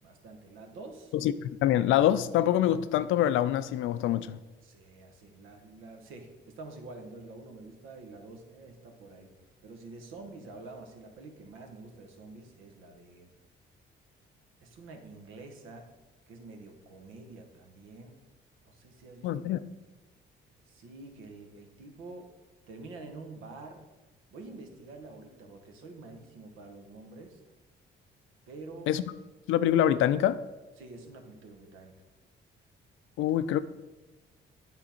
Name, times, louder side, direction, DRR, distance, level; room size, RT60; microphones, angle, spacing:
voice 1, 0.0-1.1 4.6-9.3 9.6-13.3 14.6-15.9 16.3-18.2 18.6-19.3 20.7-22.3 22.7-23.8 24.3-27.4 28.5-28.9 30.8-31.9 33.3-33.4, right 3 dB, 90° right, 4 dB, 1.1 m, -47 dB
voice 2, 1.1-4.4 19.2-19.6 28.9-29.0 29.5-30.4 33.2-33.6, left 11 dB, 80° left, 14 dB, 0.4 m, -25 dB
9.6 x 3.9 x 4.3 m, 1.2 s
cardioid pair, 90°, 20 cm